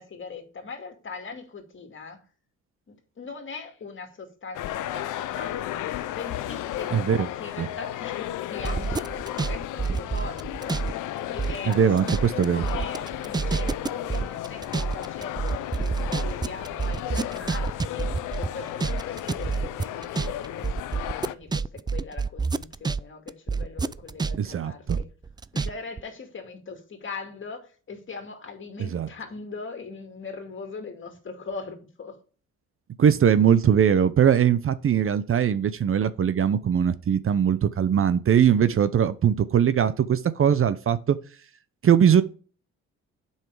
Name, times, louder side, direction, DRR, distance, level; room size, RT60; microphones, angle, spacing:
voice 1, 0.0-2.2 2.9-10.8 11.1-18.1 18.4-25.0 25.5-32.2, left 4 dB, 40° left, 2.4 m, -40 dB
sound 1, 4.5-21.3, left 13 dB, 80° left, 0.7 m, -34 dB
voice 2, 6.9-7.3 7.6-7.7 11.7-12.7 24.3-25.0 28.8-29.1 33.0-41.2 41.8-42.2, right 8 dB, 45° right, 0.7 m, -21 dB
sound 2, 8.6-10.9 11.2-23.0 23.3-25.7 26.0-26.1, right 4 dB, 15° right, 0.4 m, -28 dB
7.6 x 5.8 x 4.8 m
cardioid pair, 90°, 30 cm